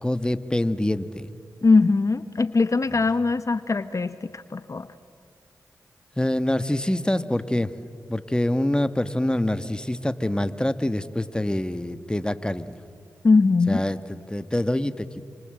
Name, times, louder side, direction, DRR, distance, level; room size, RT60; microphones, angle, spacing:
voice 1, 0.0-1.3 6.2-7.7 8.1-12.8 13.7-15.2, left 1 dB, 10° left, 11 dB, 1.5 m, -25 dB
voice 2, 1.6-4.9 13.2-13.8, left 3 dB, 45° left, 12 dB, 1.0 m, -21 dB
29.0 x 26.0 x 7.9 m, 2.2 s
cardioid pair, 40°, 7 cm